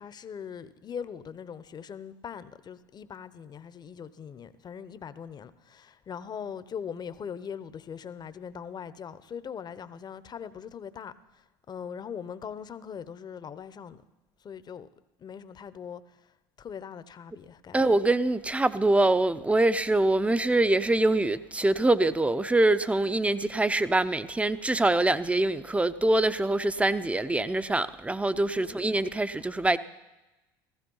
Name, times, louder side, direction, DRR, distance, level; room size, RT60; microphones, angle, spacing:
voice 1, 0.0-14.0 14.4-14.9 15.2-16.2 16.6-17.8 28.6-28.7, left 7 dB, 35° left, 0.9 m, -41 dB
voice 2, 17.7-29.8, right 2 dB, 10° right, 0.7 m, -24 dB
15.5 x 14.5 x 5.5 m
hypercardioid pair, 80°, 12 cm